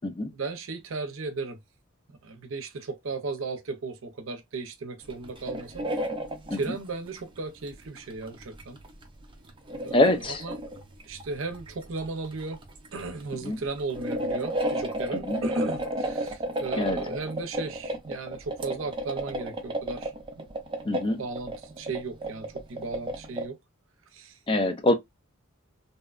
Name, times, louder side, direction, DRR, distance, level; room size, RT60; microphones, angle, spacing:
voice 1, 0.3-1.6 2.1-5.9 6.5-8.8 9.8-10.1 10.4-10.6 11.0-12.6 12.9-20.5 21.2-23.6 24.1-24.4, right 3 dB, 70° right, 0.6 m, -35 dB
sound 1, 5.0-6.8 7.2-7.3 7.7-23.5, right 1 dB, 25° right, 0.5 m, -33 dB
voice 2, 9.9-10.4 13.4-13.6 15.1-15.4 16.8-17.0 20.8-21.2 24.5-24.9, left 1 dB, 25° left, 0.5 m, -24 dB
2.7 x 2.1 x 2.3 m
head